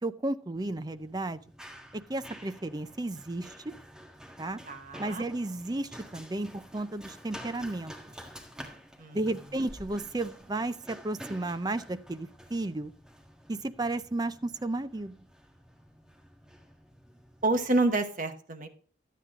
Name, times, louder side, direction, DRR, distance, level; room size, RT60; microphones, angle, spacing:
voice 1, 0.0-1.4 1.9-3.5 4.4-4.6 5.0-7.9 9.1-12.9 13.5-15.2, right 2 dB, 20° right, 12 dB, 0.5 m, -33 dB
Run, 0.5-17.8, equal, 5° right, 1.7 m, -50 dB
voice 2, 4.7-5.2 9.0-9.2 17.4-18.7, right 2 dB, 45° right, 7 dB, 1.1 m, -28 dB
12.5 x 8.4 x 3.7 m, 0.42 s
head